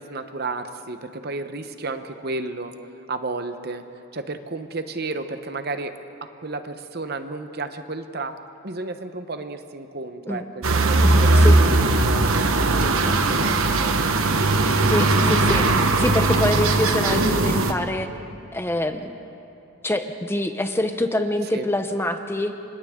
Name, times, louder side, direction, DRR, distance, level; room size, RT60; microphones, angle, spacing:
voice 1, 0.0-2.7 3.1-3.9 4.1-5.9 6.2-11.8 12.0-12.3 12.6-14.0 21.5-21.7, right 3 dB, 45° right, 8 dB, 0.9 m, -32 dB
sound 1, 10.6-17.7, right 2 dB, 70° right, 1.2 m, -19 dB
voice 2, 11.0-11.6 14.9-15.6 16.0-18.1 18.5-19.1 19.8-22.5, left 1 dB, 10° left, 7 dB, 0.7 m, -25 dB
29.5 x 25.5 x 3.7 m, 2.7 s
head